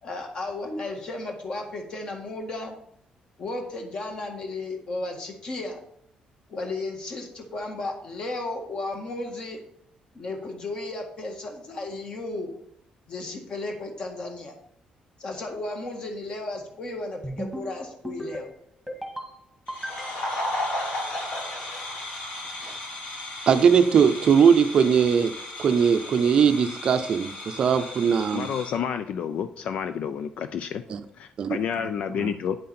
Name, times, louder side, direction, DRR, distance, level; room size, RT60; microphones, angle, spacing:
voice 1, 0.0-2.8 3.4-5.8 6.5-9.6 10.1-12.5 13.1-14.5 15.2-18.5, left 2 dB, 35° left, 3 dB, 1.7 m, -34 dB
sound 1, 17.2-17.7 18.0-18.5 18.9-19.3 19.7-20.5, right 1 dB, ahead, 1.8 m, -35 dB
sound 2, 19.7-28.8, left 1 dB, 75° left, 4.6 m, -34 dB
voice 2, 23.5-25.3 25.6-28.5 30.9-31.0 31.4-31.6 32.2-32.3, right 7 dB, 40° right, 10 dB, 0.6 m, -20 dB
voice 3, 28.3-30.8 31.1-32.6, left 7 dB, 55° left, 10 dB, 0.4 m, -30 dB
9.4 x 7.7 x 4.3 m, 0.71 s
cardioid pair, 175°, 2 cm